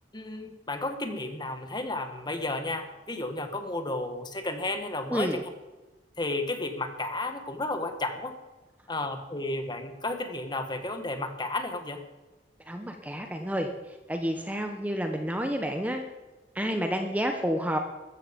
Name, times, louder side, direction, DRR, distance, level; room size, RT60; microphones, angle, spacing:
voice 1, 0.1-5.4 6.2-8.3 8.9-12.0, left 2 dB, 25° left, 7 dB, 1.6 m, -32 dB
voice 2, 5.1-5.4 12.7-13.7 14.1-16.0 16.5-17.8, equal, 10° right, 5 dB, 1.1 m, -29 dB
14.0 x 14.0 x 5.3 m, 1.1 s
head